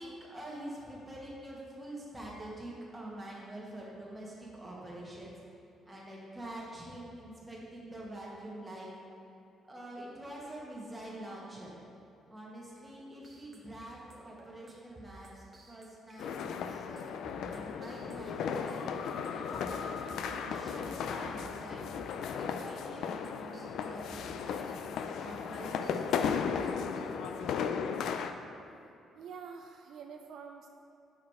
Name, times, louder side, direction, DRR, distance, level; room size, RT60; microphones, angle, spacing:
voice 1, 0.0-5.3 5.8-8.9 9.6-11.7 12.3-17.1 17.5-22.0 22.6-27.2, right 1 dB, 10° right, -5 dB, 1.5 m, -46 dB
sound 1, 13.2-18.4 18.7-19.7 20.0-20.9 21.2-23.0 23.2-27.6, right 2 dB, 30° right, 0.9 m, -55 dB
sound 2, 16.2-28.3, left 6 dB, 70° left, 0.3 m, -35 dB
voice 2, 29.2-30.7, right 6 dB, 65° right, 4 dB, 0.3 m, -46 dB
6.3 x 4.8 x 4.7 m, 2.9 s
cardioid pair, 125°, 0 cm